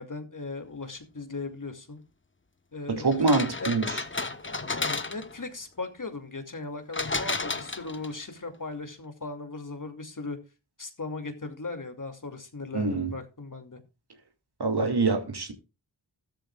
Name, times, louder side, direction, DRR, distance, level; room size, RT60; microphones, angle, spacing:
voice 1, 0.0-2.0 2.7-3.3 3.6-3.8 4.4-10.4 10.8-13.8, left 3 dB, 45° left, 2.6 m, -38 dB
voice 2, 2.9-3.9 12.7-13.1 14.6-15.5, right 3 dB, 60° right, 2.4 m, -25 dB
sound 1, 3.1-5.4 6.9-8.2, left 3 dB, 25° left, 1.2 m, -32 dB
14.0 x 13.0 x 2.4 m
cardioid pair, 50°, 45 cm